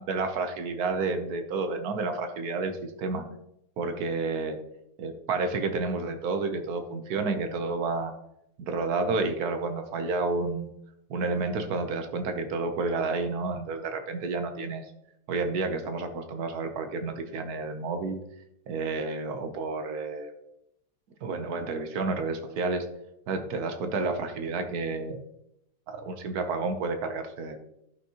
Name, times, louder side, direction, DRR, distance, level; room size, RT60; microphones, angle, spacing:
voice 1, 0.0-3.2 3.8-4.6 5.0-8.1 8.6-10.7 11.1-14.9 15.3-18.2 18.7-20.3 21.2-22.9 23.3-25.2 25.9-27.6, right 3 dB, 60° right, 7 dB, 1.2 m, -30 dB
11.5 x 5.7 x 2.9 m, 0.80 s
omnidirectional pair, 2.1 m